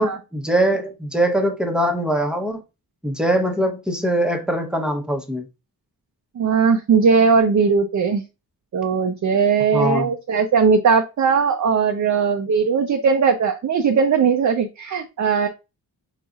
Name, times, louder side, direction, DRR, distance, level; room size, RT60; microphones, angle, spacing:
voice 1, 0.0-2.6 3.0-5.5 9.7-10.1, right 1 dB, ahead, 0.9 m, -22 dB
voice 2, 6.4-8.2 8.7-15.5, right 5 dB, 50° right, 0.6 m, -18 dB
5.5 x 4.0 x 2.4 m
wide cardioid pair, 155°, 38 cm